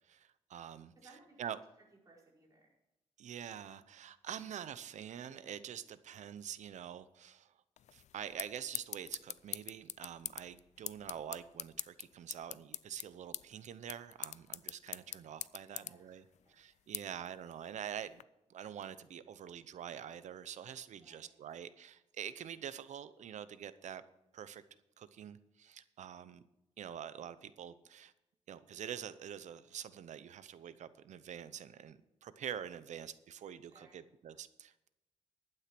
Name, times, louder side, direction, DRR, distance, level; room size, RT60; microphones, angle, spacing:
voice 1, 0.1-0.9 1.4-1.6 3.2-7.5 7.9-16.2 16.5-18.2 18.5-24.0 24.3-24.6 25.0-26.4 26.8-28.1 28.5-34.9, right 9 dB, 90° right, 14 dB, 0.8 m, -46 dB
voice 2, 0.9-1.6 2.0-2.7 15.6-17.3 20.9-21.4 33.7-34.0, right 2 dB, 30° right, -3 dB, 4.8 m, -64 dB
sound 1, 7.8-18.2, left 11 dB, 80° left, 0.4 m, -46 dB
12.0 x 9.1 x 6.0 m, 0.90 s
wide cardioid pair, 155°, 12 cm